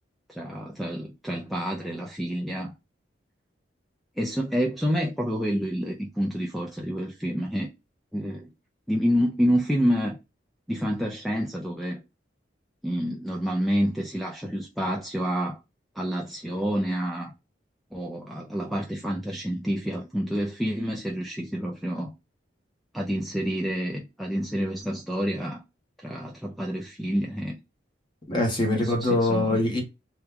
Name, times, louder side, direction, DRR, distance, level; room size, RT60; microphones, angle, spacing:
voice 1, 0.3-2.7 4.2-7.7 8.1-8.5 8.9-10.2 10.7-12.0 12.8-15.6 16.0-17.3 17.9-22.1 22.9-25.6 26.0-27.6 28.7-29.6, equal, ahead, 0.4 m, -28 dB
voice 2, 28.3-29.8, left 2 dB, 25° left, 0.9 m, -23 dB
2.9 x 2.2 x 3.4 m
head